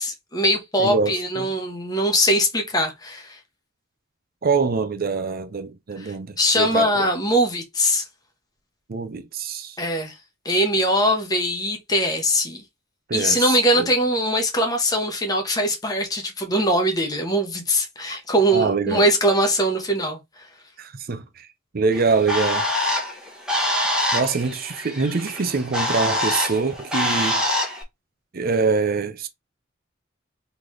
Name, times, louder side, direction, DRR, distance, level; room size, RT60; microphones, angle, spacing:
voice 1, 0.0-3.4 6.0-8.0 9.8-10.2 10.4-12.6 13.1-20.2, equal, 20° left, 1.1 m, -21 dB
voice 2, 0.8-1.5 4.4-7.1 8.9-9.8 13.1-13.9 18.5-19.0 20.8-21.5 21.7-22.7 24.1-27.4 28.3-29.3, right 4 dB, 45° right, 0.6 m, -24 dB
Bird, 21.9-27.8, left 1 dB, 5° right, 1.0 m, -25 dB
3.8 x 3.4 x 3.1 m
head